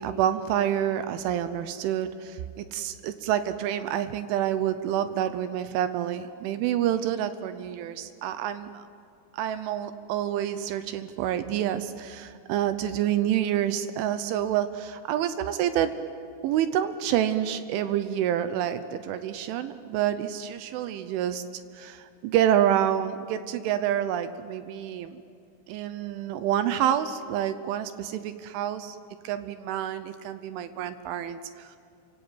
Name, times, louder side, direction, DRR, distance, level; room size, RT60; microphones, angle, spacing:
voice 1, 0.0-8.8 9.3-15.9 16.4-21.4 21.7-25.2 25.7-29.0 29.2-31.8, right 10 dB, 80° right, 11 dB, 3.1 m, -28 dB
28.5 x 25.0 x 8.0 m, 2.4 s
omnidirectional pair, 5.9 m